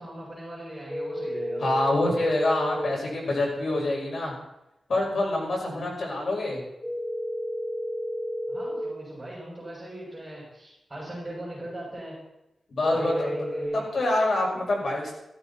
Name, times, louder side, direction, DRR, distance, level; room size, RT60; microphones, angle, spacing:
voice 1, 0.0-1.6 8.5-12.2 12.9-13.9, right 1 dB, 15° right, -6 dB, 6.6 m, -39 dB
sound 1, 0.9-2.8 6.8-8.8 12.8-13.7, equal, 15° left, 6.5 m, -31 dB
voice 2, 1.6-4.3 4.9-6.6 12.7-13.3 13.7-15.1, left 2 dB, 60° left, -3 dB, 5.6 m, -26 dB
15.0 x 13.5 x 4.3 m, 0.89 s
wide cardioid pair, 145°, 0 cm